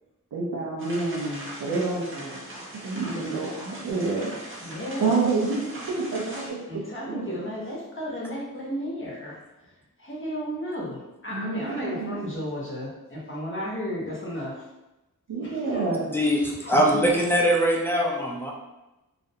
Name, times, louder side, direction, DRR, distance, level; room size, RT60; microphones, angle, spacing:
voice 1, 0.3-4.3 5.0-7.2 11.3-12.3 15.3-16.1, right 3 dB, 80° right, -7 dB, 0.6 m, -28 dB
sound 1, 0.8-6.5, right 1 dB, 35° right, 0.6 m, -40 dB
voice 2, 4.6-5.1 6.7-9.4 10.0-14.7 15.4-15.9 16.6-17.0, equal, 35° left, -5 dB, 0.8 m, -34 dB
voice 3, 16.1-18.5, equal, 5° left, -2 dB, 0.4 m, -22 dB
2.4 x 2.1 x 2.7 m, 0.99 s
wide cardioid pair, 60°, 34 cm